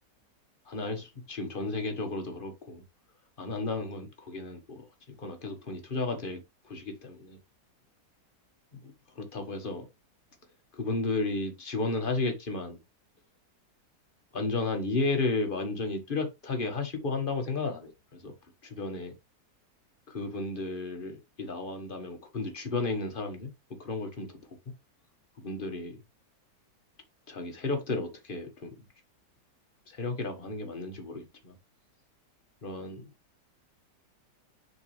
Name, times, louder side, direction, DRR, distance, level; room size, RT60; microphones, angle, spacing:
voice 1, 0.7-2.8 3.4-4.8 5.2-6.4 6.7-7.4 8.7-8.8 9.2-9.9 10.8-12.8 14.3-18.3 18.6-19.1 20.1-23.5 23.8-24.3 25.4-26.0 27.3-28.7 29.9-31.5 32.6-33.1, left 3 dB, 30° left, 1.5 m, -33 dB
7.0 x 4.4 x 3.3 m
omnidirectional pair, 1.9 m